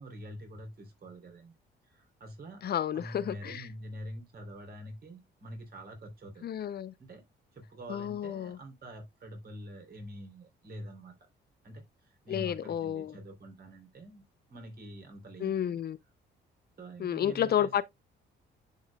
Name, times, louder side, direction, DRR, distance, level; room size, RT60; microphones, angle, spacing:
voice 1, 0.0-1.5 1.8-2.6 2.9-6.4 7.0-7.3 7.5-11.3 11.6-15.8 16.8-17.8, equal, 50° right, 3.4 m, -46 dB
voice 2, 2.6-3.7 6.4-6.9 7.9-8.6 12.3-13.2 15.4-16.0 17.0-17.8, left 10 dB, 55° left, 0.6 m, -31 dB
10.5 x 5.5 x 2.3 m
cardioid pair, 90°, 20 cm